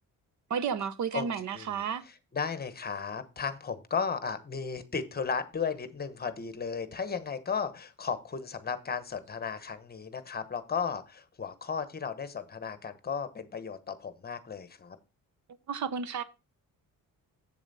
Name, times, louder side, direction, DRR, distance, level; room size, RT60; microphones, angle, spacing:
voice 1, 0.5-2.0 15.7-16.2, right 6 dB, 55° right, 0.9 m, -32 dB
voice 2, 1.5-15.0, left 6 dB, 30° left, 1.1 m, -35 dB
8.0 x 7.1 x 4.1 m
cardioid pair, 120°, 34 cm